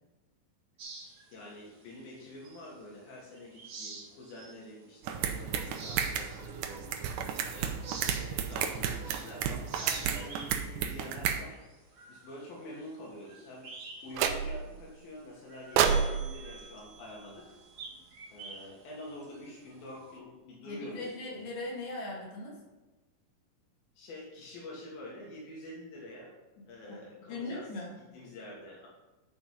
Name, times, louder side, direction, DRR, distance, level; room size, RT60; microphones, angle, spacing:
sound 1, 0.8-3.0 3.3-4.7 5.1-5.2 5.6-9.3 9.6-14.2 14.4-14.6 15.1-20.2, right 3 dB, 55° right, 1.3 m, -48 dB
voice 1, 1.3-11.6 12.1-13.7 14.0-17.5 18.3-21.1 23.9-26.4 26.7-27.7 28.1-28.9, left 1 dB, 80° left, -4 dB, 3.4 m, -47 dB
sound 2, 5.0-11.4, right 8 dB, 75° right, 2.1 m, -33 dB
sound 3, 14.1-14.8 15.8-18.0, right 7 dB, 90° right, 2.5 m, -30 dB
voice 2, 20.6-22.6 26.9-27.0 27.3-27.9, left 2 dB, 65° left, -4 dB, 3.6 m, -39 dB
10.0 x 4.9 x 5.6 m, 1.1 s
omnidirectional pair, 4.1 m